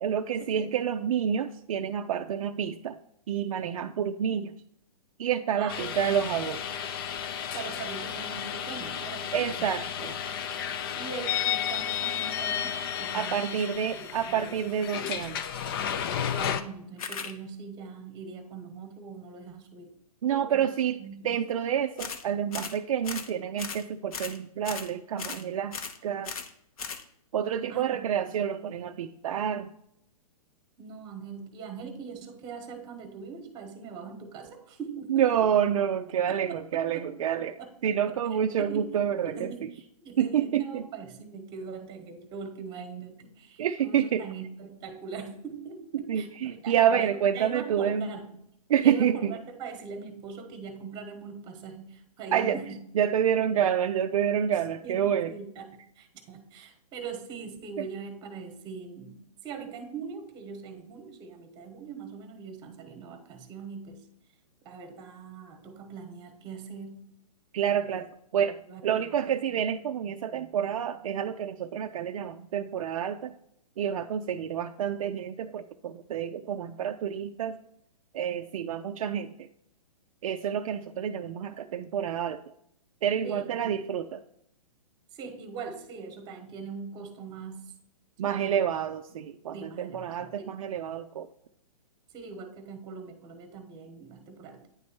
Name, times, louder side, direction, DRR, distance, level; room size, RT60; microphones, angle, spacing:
voice 1, 0.0-3.0 3.3-4.5 5.2-6.9 9.3-10.1 13.1-15.6 20.2-21.0 21.2-26.4 27.3-29.7 35.1-37.6 37.8-39.7 40.2-40.8 43.6-44.3 45.9-48.1 48.7-49.3 52.3-52.6 52.9-55.3 57.8-57.9 67.5-68.6 68.8-73.3 73.8-77.6 78.1-79.5 80.2-82.4 83.0-84.2 88.2-91.3, right 9 dB, 60° right, 6 dB, 0.4 m, -28 dB
voice 2, 5.6-6.2 7.5-9.8 11.0-13.6 13.9-14.8 16.3-19.9 20.3-20.7 21.0-21.4 27.7-28.1 30.8-35.2 36.3-38.2 38.6-39.0 39.2-48.2 48.8-52.8 54.8-64.1 64.6-67.1 67.8-67.9 68.7-69.1 83.2-83.8 85.1-87.7 88.2-88.6 89.5-90.6 92.1-94.7, right 5 dB, 20° right, 6 dB, 1.1 m, -41 dB
sound 1, 5.7-16.6, left 9 dB, 40° left, 0.4 m, -33 dB
sound 2, 17.0-17.3 22.0-22.2 22.5-22.8 23.0-23.3 23.6-23.8 24.1-24.4 24.6-24.9 25.2-25.4 25.7-26.0 26.2-26.5 26.8-27.0, left 6 dB, 65° left, 0.9 m, -37 dB
9.4 x 3.2 x 4.3 m, 0.73 s
hypercardioid pair, 140°, 20 cm